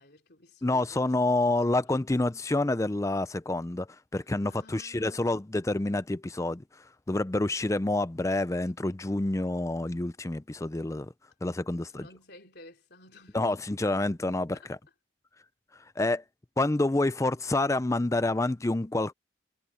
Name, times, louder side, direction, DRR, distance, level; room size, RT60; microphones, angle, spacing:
voice 1, 0.0-1.9 4.2-5.3 11.8-13.4 14.5-14.7, left 2 dB, 55° left, 3.6 m, -54 dB
voice 2, 0.6-3.9 4.1-6.6 7.1-11.1 11.4-12.0 13.3-14.8 16.0-16.2 16.6-19.1, left 2 dB, 15° left, 0.5 m, -28 dB
head